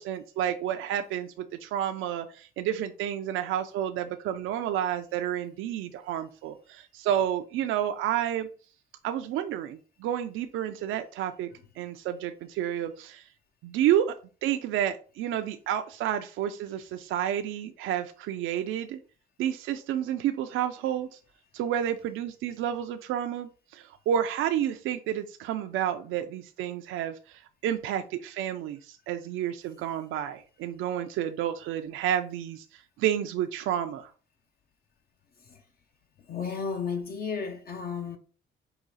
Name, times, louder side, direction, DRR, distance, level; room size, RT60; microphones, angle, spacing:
voice 1, 0.0-8.5 9.0-11.5 11.8-13.2 13.6-14.1 14.4-19.0 19.4-21.2 21.5-34.1, right 10 dB, 85° right, 0.4 m, -30 dB
voice 2, 36.3-38.2, left 5 dB, 50° left, 0.6 m, -33 dB
4.9 x 2.4 x 4.0 m
cardioid pair, 90°, 20 cm